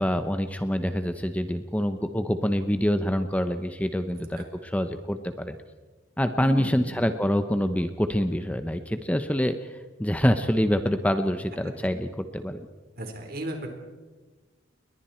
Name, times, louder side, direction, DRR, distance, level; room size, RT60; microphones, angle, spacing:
voice 1, 0.0-5.6 6.2-12.6, equal, 10° left, 8 dB, 0.9 m, -26 dB
voice 2, 6.4-6.9 11.6-11.9 13.0-13.7, right 1 dB, 55° right, 3 dB, 4.2 m, -35 dB
30.0 x 22.0 x 4.5 m, 1.3 s
head